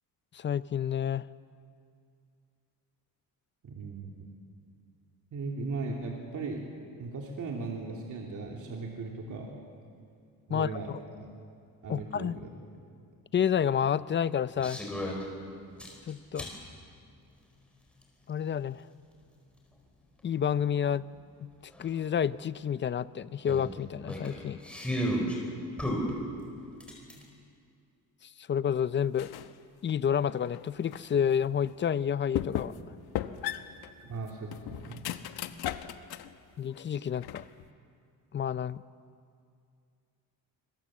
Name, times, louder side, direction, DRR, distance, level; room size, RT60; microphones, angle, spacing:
voice 1, 0.3-1.2 10.5-11.0 11.9-12.4 13.3-14.8 16.1-16.5 18.3-18.9 20.2-21.0 21.4-21.5 21.8-24.6 28.2-29.3 29.8-32.7 36.6-37.4 38.3-38.8, left 8 dB, 30° left, 16 dB, 0.5 m, -29 dB
voice 2, 3.6-4.3 5.3-6.6 7.0-9.5 10.5-10.9 11.2-11.3 11.8-12.5 34.0-35.0, right 3 dB, 55° right, -1 dB, 2.8 m, -37 dB
sound 1, 14.6-15.2 15.8-16.6 18.0-18.1 20.8-20.9 21.1-21.2 21.7-21.9 23.5-25.4 25.8-27.2, equal, 5° left, 4.7 m, -33 dB
sound 2, 29.1-29.6 30.0-31.1 31.7-31.8 32.3-32.9 33.1-36.4 36.7-37.7, left 12 dB, 85° left, 1.1 m, -37 dB
25.5 x 22.5 x 7.4 m, 2.4 s
cardioid pair, 140°, 37 cm